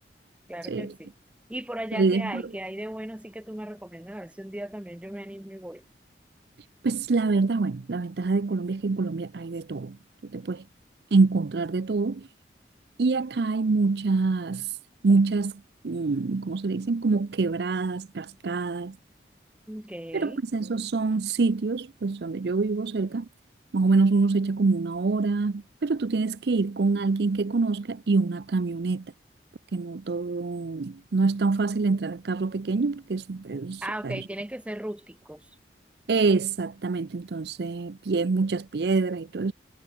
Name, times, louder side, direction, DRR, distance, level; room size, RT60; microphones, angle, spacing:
voice 1, 0.5-1.1 1.5-5.8 19.7-20.4 33.8-35.4, right 1 dB, 5° right, 0.6 m, -37 dB
voice 2, 1.9-2.4 6.8-10.0 10.2-10.6 11.1-12.3 13.0-14.7 15.0-15.5 15.8-19.0 20.1-23.3 23.7-29.0 29.7-34.2 36.1-39.5, right 3 dB, 65° right, 0.5 m, -25 dB
head